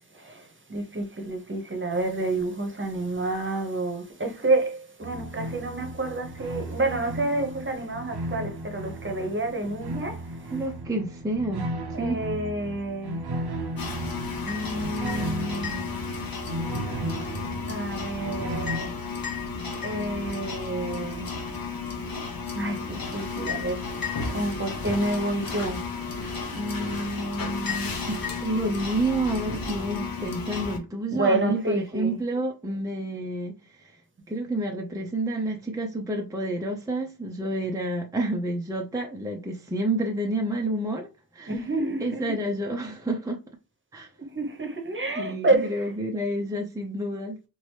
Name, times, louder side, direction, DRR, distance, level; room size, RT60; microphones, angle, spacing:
voice 1, 0.1-10.6 11.9-13.2 14.4-15.7 17.7-18.9 19.8-21.4 22.5-26.2 26.5-27.9 31.1-32.2 41.5-42.4 44.2-45.9, right 2 dB, 30° right, 1.0 m, -29 dB
sound 1, 5.0-18.8, right 1 dB, 85° right, 0.7 m, -35 dB
voice 2, 10.5-12.2 28.4-33.5 33.8-33.9 34.3-41.1 41.3-41.5 42.0-43.4 43.9-44.1 45.2-47.4, right 1 dB, 10° right, 0.6 m, -29 dB
sound 2, 13.8-30.8, left 5 dB, 65° left, 0.9 m, -33 dB
3.0 x 2.6 x 3.2 m
wide cardioid pair, 75°, 38 cm